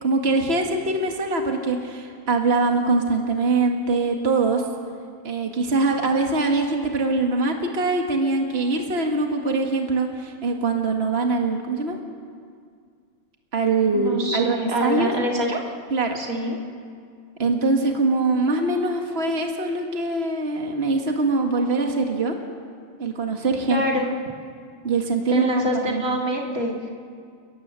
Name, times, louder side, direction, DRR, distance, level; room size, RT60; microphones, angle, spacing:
voice 1, 0.0-4.6 5.2-12.0 13.5-15.1 15.9-16.2 17.4-22.3 23.0-23.8 24.8-25.5 25.8-26.2, right 3 dB, 45° right, 2 dB, 2.2 m, -23 dB
voice 2, 13.9-15.6 16.1-16.6 23.7-24.1 25.3-26.7, equal, 85° right, 0 dB, 3.2 m, -25 dB
29.0 x 19.5 x 7.6 m, 2.1 s
omnidirectional pair, 1.5 m